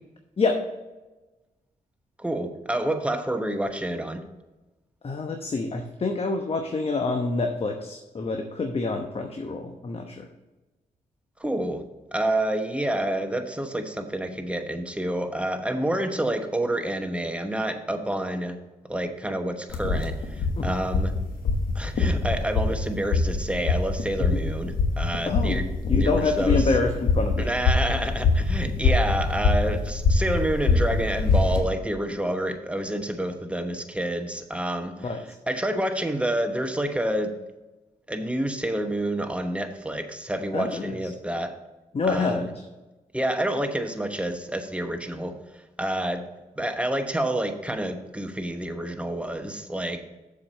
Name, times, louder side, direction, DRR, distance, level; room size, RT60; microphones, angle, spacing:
voice 1, 2.2-4.2 11.4-11.9 12.1-18.6 18.9-21.1 21.7-25.7 26.0-26.7 27.4-35.1 35.5-37.4 38.1-41.5 42.1-42.5 43.1-45.3 45.8-46.2 46.6-50.0, right 1 dB, 10° right, 7 dB, 1.0 m, -28 dB
voice 2, 5.0-10.3 20.6-20.7 24.3-24.4 25.3-25.6 25.9-27.5 35.0-35.2 40.5-41.0 41.9-42.5, left 3 dB, 40° left, 4 dB, 0.9 m, -27 dB
sound 1, 19.7-31.6, left 4 dB, 75° left, 1.2 m, -24 dB
7.0 x 4.9 x 6.0 m, 1.1 s
supercardioid pair, 55°, 15 cm